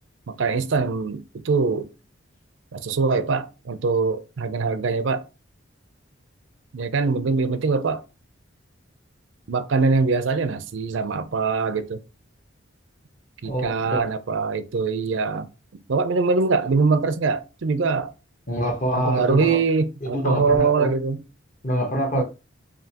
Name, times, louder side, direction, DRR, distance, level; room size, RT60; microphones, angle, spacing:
voice 1, 0.3-1.9 2.7-5.2 6.7-8.0 9.5-12.0 13.4-15.5 15.9-18.1 19.0-21.2 22.1-22.2, right 4 dB, 75° right, 0.5 m, -23 dB
voice 2, 13.4-14.0 18.5-19.6 20.0-20.9 21.6-22.2, equal, 40° left, 1.0 m, -25 dB
5.1 x 2.8 x 2.8 m
head